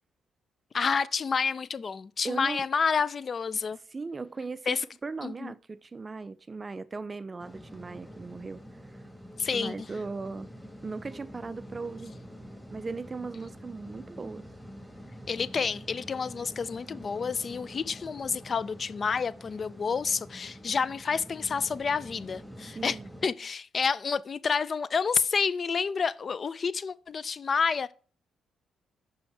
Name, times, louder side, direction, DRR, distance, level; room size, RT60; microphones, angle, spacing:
voice 1, 0.7-3.8 4.7-4.8 5.2-5.5 9.4-9.9 15.3-23.0 23.2-27.9, left 5 dB, 40° left, 0.4 m, -29 dB
voice 2, 2.2-2.6 3.9-8.6 8.9-9.0 9.5-10.5 10.8-12.1 12.7-14.5 22.7-23.1, right 4 dB, 30° right, 0.3 m, -38 dB
sound 1, 7.4-23.3, equal, ahead, 1.3 m, -47 dB
5.6 x 5.5 x 3.3 m
cardioid pair, 90°, 0 cm